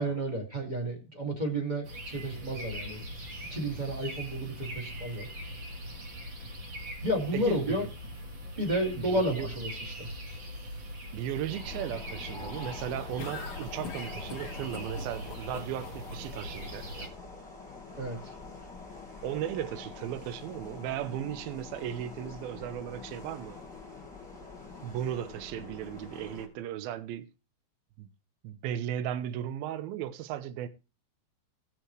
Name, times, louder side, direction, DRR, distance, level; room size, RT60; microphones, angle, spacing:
voice 1, 0.0-3.0 3.5-5.3 7.0-7.9 8.6-10.1 18.0-18.2, right 1 dB, 20° right, 1.2 m, -31 dB
sound 1, 1.8-17.1, equal, 60° right, 1.2 m, -41 dB
voice 2, 7.3-7.9 9.0-9.5 11.1-17.1 19.2-23.6 24.8-27.3 28.0-28.1 28.4-30.7, right 11 dB, 80° right, 2.3 m, -36 dB
sound 2, 11.5-26.5, left 4 dB, ahead, 4.2 m, -45 dB
sound 3, 13.2-16.2, left 5 dB, 90° left, 1.2 m, -42 dB
18.5 x 6.8 x 3.2 m
omnidirectional pair, 5.0 m